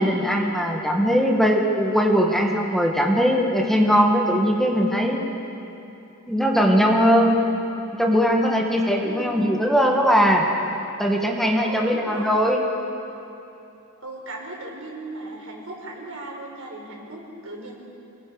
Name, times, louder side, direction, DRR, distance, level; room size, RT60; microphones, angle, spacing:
voice 1, 0.0-5.3 6.3-7.4 8.0-10.4 11.0-12.6, equal, ahead, 0 dB, 1.7 m, -20 dB
voice 2, 11.5-12.3 14.0-17.8, right 2 dB, 80° right, -2 dB, 5.1 m, -37 dB
29.0 x 20.0 x 5.1 m, 2.8 s
head